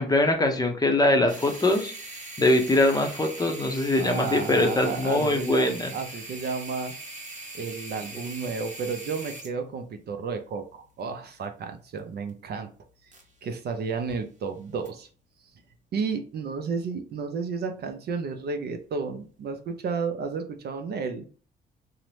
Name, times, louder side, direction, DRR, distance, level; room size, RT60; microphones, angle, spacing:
voice 1, 0.0-1.9 2.4-5.9, left 1 dB, 20° left, 4 dB, 0.6 m, -22 dB
sound 1, 1.3-13.6 13.9-14.1 14.8-14.9, right 2 dB, 40° right, 0.9 m, -42 dB
voice 2, 4.0-7.0 7.5-12.7 13.4-15.1 15.9-21.3, right 5 dB, 55° right, 7 dB, 0.5 m, -32 dB
2.7 x 2.0 x 3.1 m, 0.39 s
cardioid pair, 90°, 20 cm